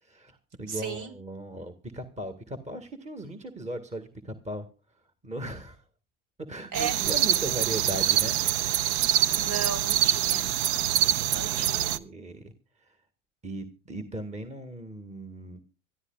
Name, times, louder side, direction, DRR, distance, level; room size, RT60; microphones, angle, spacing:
voice 1, 0.0-4.7 5.2-5.8 6.4-8.8 11.3-12.5 12.8-13.0 13.4-15.6, right 1 dB, 20° right, 7 dB, 1.9 m, -38 dB
voice 2, 0.7-1.1 6.7-7.0 9.3-10.5 11.2-12.0, right 6 dB, 55° right, 5 dB, 4.0 m, -35 dB
sound 1, 6.7-12.0, right 11 dB, 70° right, 0.9 m, -25 dB
26.0 x 14.5 x 2.4 m, 0.34 s
hypercardioid pair, 85°, 36 cm